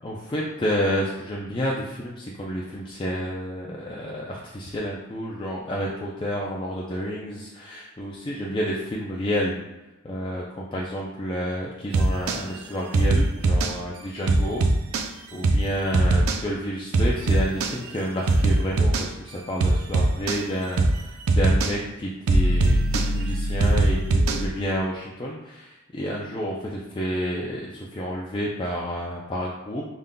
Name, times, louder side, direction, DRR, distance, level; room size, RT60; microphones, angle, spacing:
voice 1, 0.0-9.6 10.0-14.6 15.3-20.9 21.3-25.7 25.9-29.9, equal, 25° left, -4 dB, 0.4 m, -30 dB
sound 1, 11.9-12.4 12.9-13.7 14.3-15.1 15.4-15.7 15.9-16.4 16.9-17.7 18.3-19.1 19.6-20.4 20.8-21.0 21.3-21.7 22.3-24.5, right 2 dB, 90° right, 0.5 m, -20 dB
5.1 x 3.7 x 2.2 m, 1.0 s
head